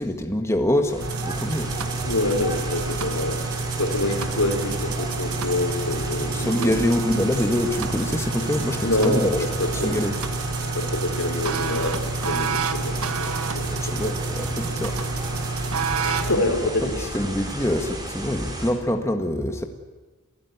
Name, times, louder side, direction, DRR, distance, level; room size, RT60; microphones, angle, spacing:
voice 1, 0.0-1.7 6.3-9.4 9.8-10.2 13.7-15.0 16.8-19.6, left 1 dB, 15° left, 4 dB, 1.6 m, -25 dB
sound 1, 0.8-18.7, right 1 dB, 20° right, 4.6 m, -34 dB
sound 2, 1.0-16.4, right 4 dB, 75° right, 1.4 m, -29 dB
voice 2, 2.0-6.7 8.8-10.1 10.7-14.2 16.0-17.1, left 1 dB, 85° left, 4 dB, 4.8 m, -27 dB
29.0 x 15.5 x 9.6 m, 1.3 s
head